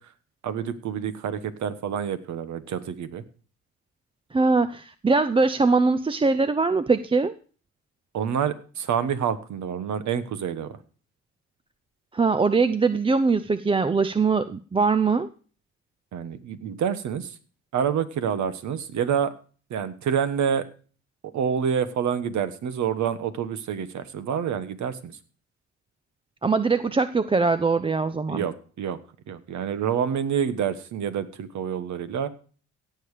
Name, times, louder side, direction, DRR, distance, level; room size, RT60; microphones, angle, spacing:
voice 1, 0.4-3.2 8.1-10.8 16.1-17.3 17.7-19.3 19.7-20.6 21.3-25.1 28.3-29.0 29.3-32.3, right 8 dB, 70° right, 12 dB, 1.3 m, -27 dB
voice 2, 4.3-7.3 12.1-15.3 26.4-28.4, right 4 dB, 20° right, 12 dB, 0.5 m, -22 dB
17.0 x 7.2 x 4.9 m, 0.40 s
cardioid pair, 90°, 30 cm